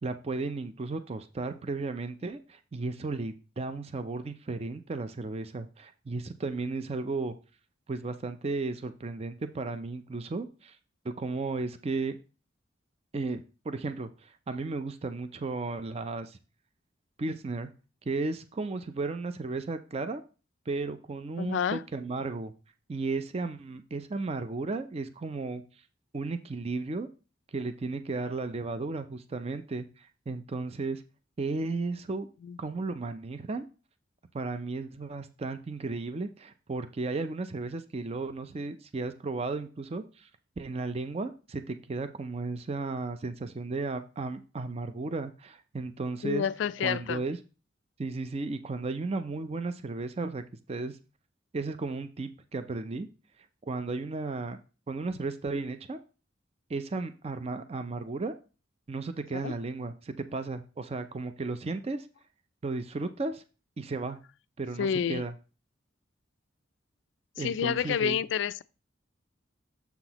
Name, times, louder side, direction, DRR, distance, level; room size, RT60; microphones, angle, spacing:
voice 1, 0.0-7.4 7.9-10.8 11.0-12.2 13.1-16.4 17.2-17.7 18.1-20.2 20.7-22.5 22.9-25.6 26.1-27.1 27.5-31.0 31.4-32.3 32.6-33.6 34.3-40.3 40.6-46.4 46.8-47.4 48.0-50.4 50.7-51.0 51.5-53.1 53.6-54.6 54.9-56.0 56.7-58.3 58.9-62.1 62.6-63.4 63.8-64.2 64.6-65.3 67.4-68.2, right 3 dB, 35° right, 0.4 m, -34 dB
voice 2, 21.4-21.8 32.4-32.6 46.2-47.2 59.3-59.5 64.8-65.2 67.4-68.6, left 8 dB, 65° left, 0.3 m, -29 dB
7.0 x 5.8 x 2.9 m
head